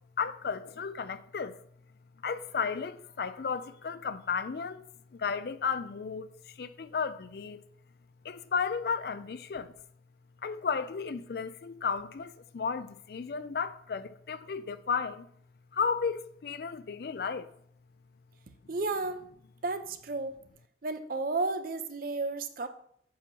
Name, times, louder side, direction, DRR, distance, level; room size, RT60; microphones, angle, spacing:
voice 1, 0.2-1.6 2.2-4.8 5.1-7.6 8.2-9.8 10.4-15.3 15.7-17.5, left 5 dB, 55° left, 0.4 m, -34 dB
voice 2, 18.7-19.2 19.6-20.4 20.8-22.7, right 3 dB, 50° right, 0.6 m, -32 dB
8.3 x 3.0 x 6.0 m
head